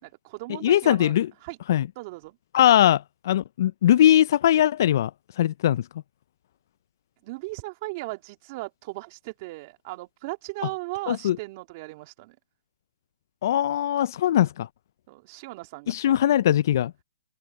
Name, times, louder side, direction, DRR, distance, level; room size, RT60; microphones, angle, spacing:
voice 1, 0.0-1.2 1.4-1.6 2.0-2.4 7.2-12.4 15.1-16.5, right 22 dB, 35° right, 2.6 m, -37 dB
voice 2, 0.6-1.3 1.7-1.9 2.5-5.9 11.1-11.4 13.4-14.7 15.9-16.9, left 11 dB, 50° left, 0.4 m, -21 dB
open air
hypercardioid pair, 150°, 2 cm